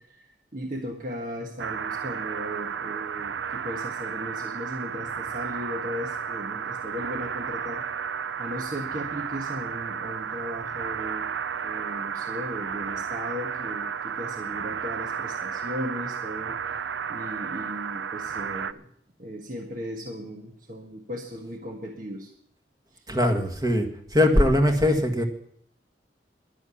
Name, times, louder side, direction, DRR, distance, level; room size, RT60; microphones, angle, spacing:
voice 1, 0.0-8.1 8.4-11.3 11.6-16.8 17.1-18.9 19.2-22.3 22.9-23.0, equal, 50° right, 1 dB, 1.5 m, -37 dB
sound 1, 1.6-18.7, right 7 dB, 90° right, 0.5 m, -33 dB
voice 2, 23.1-25.2, left 1 dB, 20° right, 4 dB, 1.7 m, -21 dB
11.5 x 10.5 x 7.2 m, 0.69 s
head